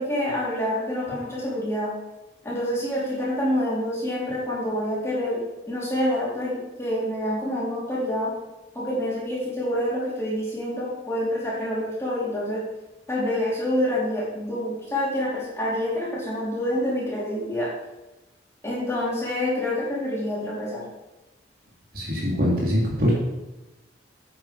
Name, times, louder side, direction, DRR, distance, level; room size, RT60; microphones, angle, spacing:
voice 1, 0.0-1.9 2.4-8.3 8.7-12.6 13.1-17.7 18.6-20.9, left 1 dB, 15° left, -7 dB, 4.5 m, -27 dB
voice 2, 21.9-23.1, equal, 55° right, -4 dB, 3.7 m, -23 dB
9.9 x 9.0 x 5.3 m, 1.0 s
head